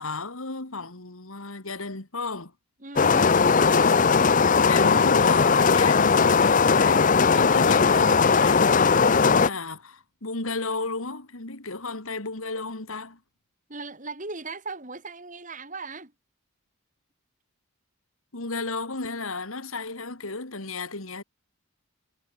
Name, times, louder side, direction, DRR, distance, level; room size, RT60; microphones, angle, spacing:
voice 1, 0.0-2.5 3.2-4.1 4.7-13.2 18.3-21.2, left 3 dB, 70° left, 2.6 m, -34 dB
voice 2, 2.8-3.3 13.7-16.1, right 3 dB, 35° right, 3.7 m, -38 dB
sound 1, 3.0-9.5, left 5 dB, 35° left, 0.6 m, -19 dB
head